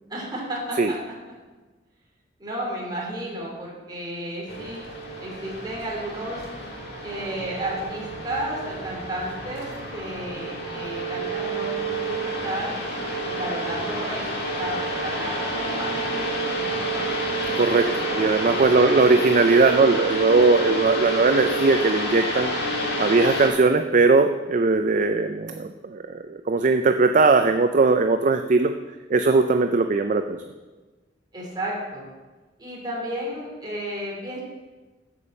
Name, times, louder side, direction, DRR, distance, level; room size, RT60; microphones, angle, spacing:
voice 1, 0.1-1.0 2.4-4.8 5.2-6.4 7.0-12.7 13.3-14.3 14.6-16.0 17.8-18.6 31.3-32.1 32.6-34.4, right 1 dB, 25° right, -4 dB, 3.2 m, -32 dB
sound 1, 4.5-23.5, right 2 dB, 60° left, 2.1 m, -28 dB
voice 2, 17.5-17.9 18.1-22.5 23.0-28.7 29.1-30.4, right 3 dB, 45° right, 7 dB, 0.4 m, -19 dB
8.4 x 7.0 x 7.5 m, 1.2 s
head